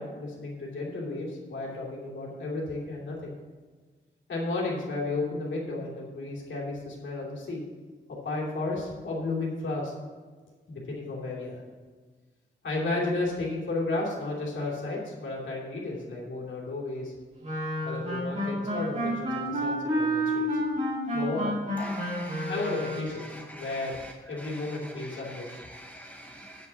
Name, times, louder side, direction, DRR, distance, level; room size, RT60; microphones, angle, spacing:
voice 1, 0.0-3.3 4.3-7.6 8.1-9.9 10.7-11.6 12.6-17.1 17.8-20.5 21.1-21.5 22.5-23.2 23.5-24.0 24.3-25.7, left 2 dB, 70° left, -4 dB, 2.8 m, -33 dB
Wind instrument woodwind instrument, 17.4-23.2, equal, 35° right, 3.3 m, -30 dB
voice 2, 21.8-22.5 23.2-24.1 24.4-26.7, equal, 10° left, 0 dB, 0.7 m, -44 dB
9.3 x 5.9 x 6.9 m, 1.4 s
wide cardioid pair, 170°, 20 cm